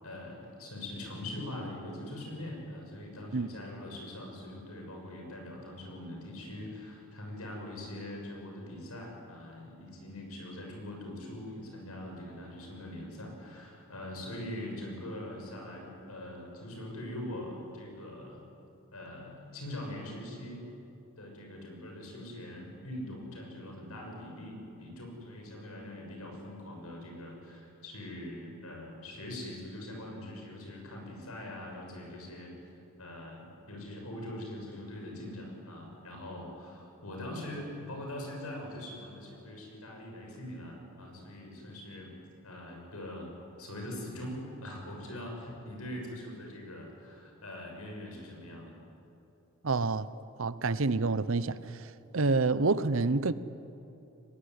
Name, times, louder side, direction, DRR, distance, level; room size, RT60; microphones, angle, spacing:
voice 1, 0.0-18.5 18.9-20.7 21.2-32.5 33.0-42.1 42.4-43.3 43.6-48.7, left 1 dB, 85° left, 6.9 m, -42 dB
voice 2, 49.6-50.1 50.4-51.6 52.1-53.3, right 3 dB, 65° right, 0.8 m, -27 dB
23.0 x 20.5 x 9.7 m
head